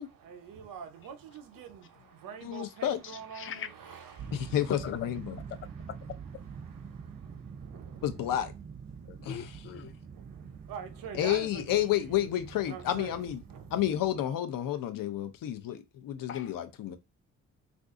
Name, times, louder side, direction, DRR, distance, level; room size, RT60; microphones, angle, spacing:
voice 1, 0.0-4.7 5.2-8.5 8.9-9.4 9.9-13.8, right 7 dB, 85° right, 0.8 m, -47 dB
voice 2, 2.4-3.0 4.3-5.3 8.0-8.5 9.2-9.5 11.2-13.4 13.7-17.0, left 12 dB, 90° left, 0.6 m, -30 dB
voice 3, 3.0-3.7 4.5-5.0 5.5-5.6 5.9-6.0 9.1-9.9 16.3-16.6, left 8 dB, 40° left, 0.4 m, -40 dB
sound 1, 4.2-14.2, right 6 dB, 25° right, 0.4 m, -46 dB
2.6 x 2.4 x 3.6 m
cardioid pair, 140°, 32 cm